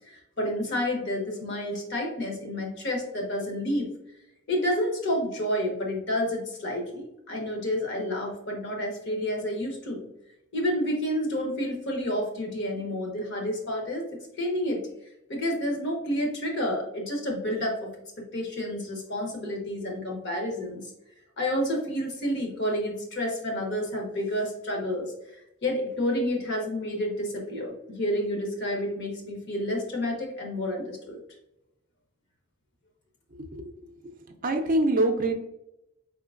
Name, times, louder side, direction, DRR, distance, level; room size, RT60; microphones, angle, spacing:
voice 1, 0.1-3.9 4.5-10.1 10.5-14.0 14.4-14.8 15.3-17.9 18.2-20.8 21.4-25.1 25.6-31.2, left 1 dB, 55° left, 1 dB, 1.0 m, -29 dB
voice 2, 33.3-34.1 34.4-35.3, right 1 dB, 40° right, 4 dB, 0.5 m, -26 dB
4.2 x 3.7 x 2.4 m, 0.85 s
head